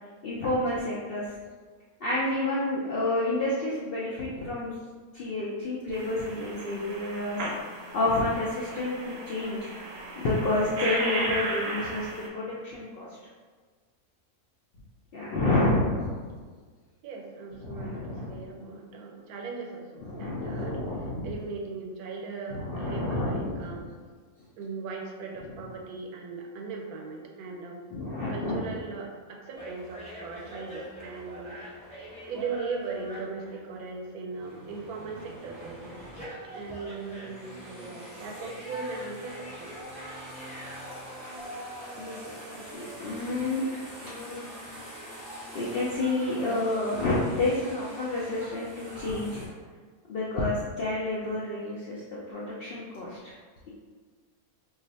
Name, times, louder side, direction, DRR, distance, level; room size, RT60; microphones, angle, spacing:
voice 1, 0.2-1.3 2.0-4.7 5.1-7.4 7.7-9.7 10.2-13.1 15.1-16.1 17.6-18.4 20.0-21.3 22.5-23.7 27.9-28.7 42.0-44.5 45.5-49.5 50.1-53.4, left 2 dB, 75° left, -6 dB, 0.5 m, -29 dB
sound 1, 5.9-12.3, right 2 dB, 65° right, 0.8 m, -35 dB
voice 2, 17.0-23.9 24.6-27.8 28.3-31.6 32.3-36.0 36.5-39.7, right 4 dB, 85° right, 1 dB, 1.1 m, -38 dB
sound 2, 29.5-33.9 34.3-49.5, equal, 5° left, 0.9 m, -43 dB
2.4 x 2.4 x 3.9 m, 1.5 s
omnidirectional pair, 1.5 m